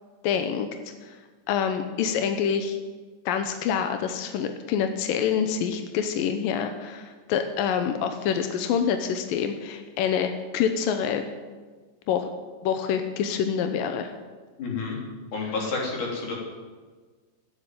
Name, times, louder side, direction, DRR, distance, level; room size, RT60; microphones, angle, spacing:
voice 1, 0.2-0.7 1.0-1.1 1.5-2.8 3.3-11.2 12.1-12.3 12.6-14.1, left 7 dB, 75° left, 7 dB, 2.1 m, -26 dB
voice 2, 14.6-15.0 15.3-16.3, left 4 dB, 45° left, -1 dB, 4.6 m, -29 dB
14.5 x 9.8 x 9.3 m, 1.4 s
omnidirectional pair, 5.2 m